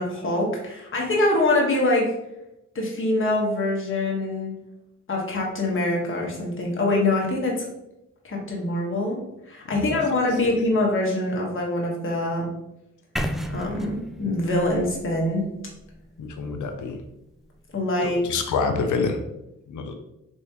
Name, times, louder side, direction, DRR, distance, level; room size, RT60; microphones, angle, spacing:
voice 1, 0.0-2.1 2.7-4.5 5.1-7.5 8.2-9.2 9.5-12.5 13.5-15.4 17.7-18.2, left 2 dB, 40° left, -2 dB, 1.2 m, -24 dB
sound 1, 13.2-17.1, equal, ahead, 0.3 m, -34 dB
voice 2, 16.2-17.0 18.0-19.2 19.7-19.9, left 4 dB, 70° left, 6 dB, 0.6 m, -27 dB
3.6 x 3.1 x 2.9 m, 0.87 s
supercardioid pair, 55°, 32 cm